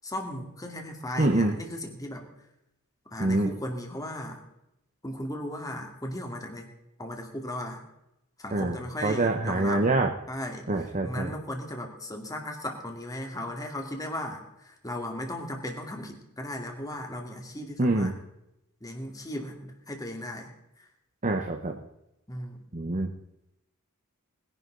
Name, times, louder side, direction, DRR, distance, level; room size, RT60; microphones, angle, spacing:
voice 1, 0.0-2.3 3.1-4.4 5.0-6.7 7.0-7.8 8.4-9.8 10.3-18.2 18.8-20.5 20.8-20.9 22.3-22.6, left 1 dB, 15° left, 2 dB, 2.3 m, -36 dB
voice 2, 1.2-1.5 3.2-3.5 8.5-8.8 9.0-10.1 10.7-11.3 17.8-18.1 21.2-21.8 22.7-23.1, right 2 dB, 35° right, 3 dB, 1.0 m, -25 dB
20.5 x 11.0 x 3.9 m, 0.86 s
head